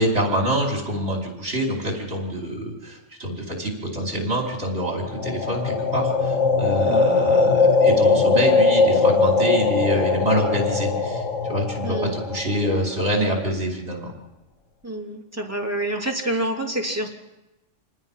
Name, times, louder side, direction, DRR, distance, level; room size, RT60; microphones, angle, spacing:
voice 1, 0.0-14.1, equal, 60° right, -1 dB, 5.4 m, -26 dB
sound 1, 5.0-13.1, left 4 dB, 75° left, 1.6 m, -20 dB
voice 2, 11.8-12.2 14.8-17.1, right 1 dB, 10° right, 0 dB, 2.9 m, -27 dB
27.0 x 19.5 x 5.7 m, 1.0 s
omnidirectional pair, 1.3 m